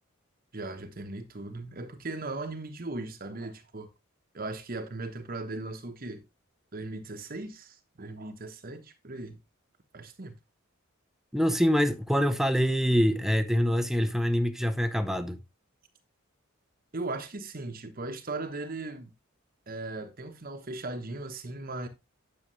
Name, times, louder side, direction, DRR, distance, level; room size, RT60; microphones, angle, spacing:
voice 1, 0.5-3.9 4.3-6.2 6.7-9.4 9.9-10.3 16.9-19.1 19.7-21.9, right 2 dB, 40° right, 1.1 m, -38 dB
voice 2, 11.3-15.4, equal, ahead, 0.7 m, -25 dB
10.0 x 6.7 x 3.1 m
head